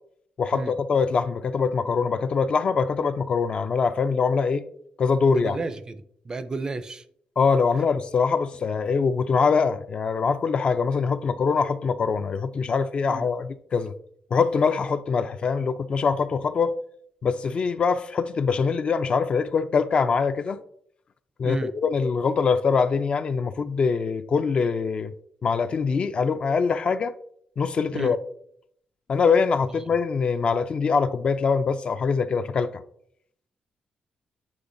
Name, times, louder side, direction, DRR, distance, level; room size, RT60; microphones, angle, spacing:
voice 1, 0.4-4.7 5.0-5.6 7.4-13.9 14.3-16.7 17.2-20.6 21.4-25.1 25.4-27.1 27.6-28.2 29.1-32.8, left 5 dB, 40° left, 0.3 m, -23 dB
voice 2, 5.3-7.1 13.0-13.3 21.4-21.7 27.9-28.2, right 3 dB, 25° right, 0.4 m, -32 dB
8.3 x 5.4 x 2.6 m
wide cardioid pair, 145°, 3 cm